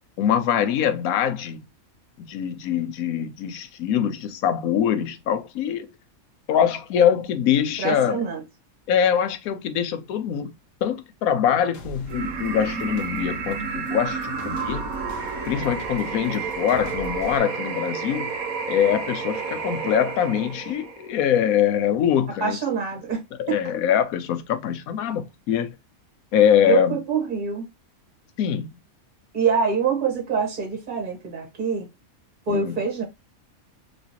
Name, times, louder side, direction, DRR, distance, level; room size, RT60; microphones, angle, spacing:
voice 1, 0.2-1.6 2.2-5.9 6.5-8.2 8.9-10.5 10.8-14.8 15.5-18.3 18.7-22.6 23.4-25.7 26.3-27.0 28.4-28.7 32.5-32.8, left 9 dB, 85° left, 1.1 m, -23 dB
voice 2, 7.8-8.4 22.4-23.2 23.5-23.6 26.7-27.6 29.3-31.9 32.5-33.0, right 6 dB, 35° right, 1.3 m, -25 dB
sound 1, 11.7-17.4, equal, 55° left, 0.8 m, -41 dB
sound 2, 12.1-21.1, right 5 dB, 90° right, 1.2 m, -31 dB
3.1 x 3.0 x 2.7 m
omnidirectional pair, 1.5 m